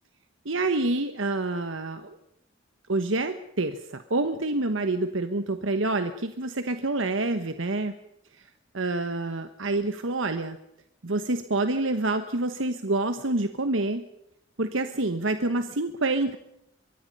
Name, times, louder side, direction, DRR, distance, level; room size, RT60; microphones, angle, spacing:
voice 1, 0.4-2.2 2.9-7.9 8.7-10.6 11.0-14.0 14.6-16.4, right 2 dB, 80° right, 9 dB, 1.2 m, -27 dB
24.5 x 23.5 x 5.5 m, 0.77 s
head